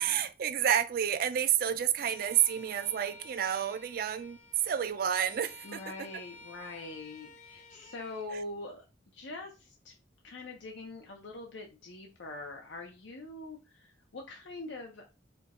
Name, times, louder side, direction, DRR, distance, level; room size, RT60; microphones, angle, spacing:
voice 1, 0.0-4.4 4.7-5.8, right 9 dB, 50° right, 0.3 m, -29 dB
Bowed string instrument, 2.0-8.3, left 2 dB, 40° left, 0.7 m, -53 dB
voice 2, 5.6-8.8 9.1-9.9 10.2-15.1, left 2 dB, 85° left, 0.7 m, -43 dB
4.4 x 2.3 x 4.1 m
head